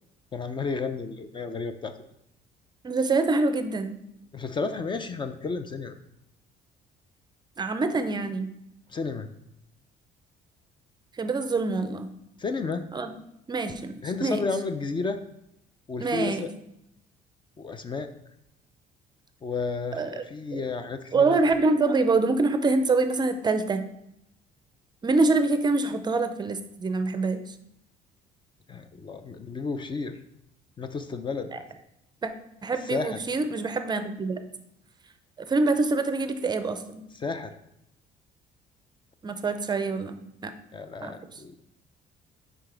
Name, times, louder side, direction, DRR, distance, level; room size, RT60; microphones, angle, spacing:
voice 1, 0.3-2.0 4.3-6.0 8.9-9.3 12.4-12.8 14.0-15.2 15.9-16.5 17.6-18.1 19.4-21.4 28.7-30.2 30.8-31.5 32.8-33.2 37.2-37.5 40.7-41.6, left 4 dB, 30° left, 9 dB, 0.4 m, -32 dB
voice 2, 2.8-4.0 7.6-8.5 11.1-12.1 12.9-13.2 13.5-14.4 16.0-16.5 19.9-20.2 20.5-20.7 21.1-23.8 25.0-27.5 31.5-31.6 32.2-32.3 32.6-34.4 35.4-37.0 39.2-40.5 41.0-41.4, right 3 dB, 25° right, 9 dB, 0.5 m, -25 dB
5.8 x 4.9 x 3.3 m, 0.80 s
cardioid pair, 110°, 17 cm